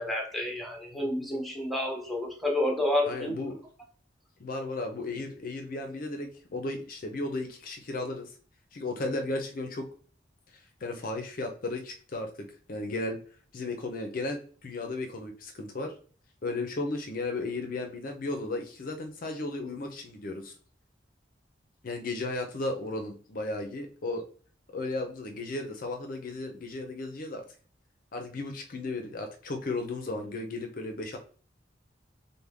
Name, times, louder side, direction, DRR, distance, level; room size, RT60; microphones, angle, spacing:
voice 1, 0.0-3.4, left 1 dB, ahead, 0 dB, 0.7 m, -30 dB
voice 2, 3.1-3.6 4.4-8.3 8.7-9.9 10.5-13.2 13.5-15.9 16.4-20.6 21.8-24.2 24.7-27.4 28.1-31.2, left 2 dB, 50° left, 5 dB, 0.5 m, -35 dB
3.3 x 2.1 x 3.5 m, 0.42 s
head